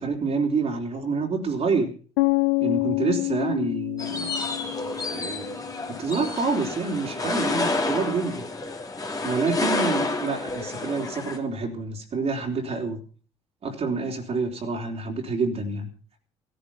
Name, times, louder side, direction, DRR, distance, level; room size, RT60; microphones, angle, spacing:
voice 1, 0.0-1.9 2.6-4.4 5.1-5.6 5.9-8.5 9.2-13.0 13.6-15.9, right 4 dB, 45° right, 1 dB, 3.8 m, -27 dB
sound 1, 2.2-6.1, left 25 dB, 80° left, 0.9 m, -27 dB
sound 2, 4.0-11.4, left 3 dB, 25° left, 3.2 m, -29 dB
16.5 x 11.5 x 5.6 m, 0.43 s
hypercardioid pair, 55°, 14 cm